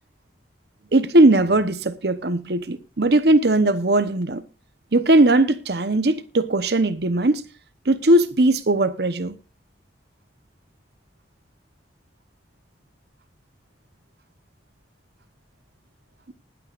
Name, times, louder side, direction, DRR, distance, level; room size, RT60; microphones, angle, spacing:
voice 1, 0.9-4.4 4.9-7.4 7.9-9.3, right 2 dB, 60° right, 1.0 m, -19 dB
20.5 x 9.0 x 2.5 m
head